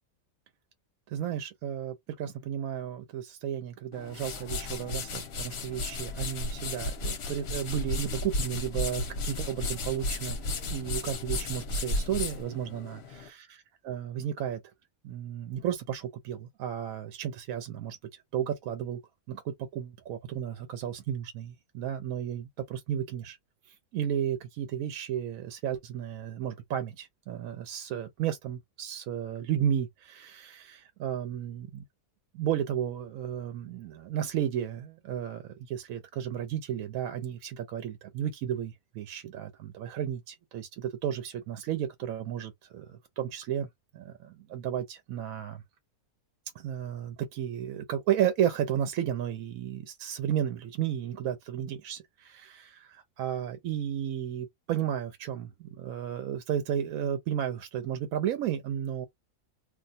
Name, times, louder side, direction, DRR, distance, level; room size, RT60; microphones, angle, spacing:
voice 1, 1.1-13.5 13.8-14.6 15.0-18.0 18.3-19.0 19.3-23.4 23.9-31.8 32.4-43.7 43.9-45.6 46.5-59.1, right 10 dB, 80° right, 1.0 m, -33 dB
sound 1, 3.9-13.3, left 2 dB, 55° left, 0.9 m, -34 dB
2.5 x 2.2 x 4.0 m
omnidirectional pair, 1.5 m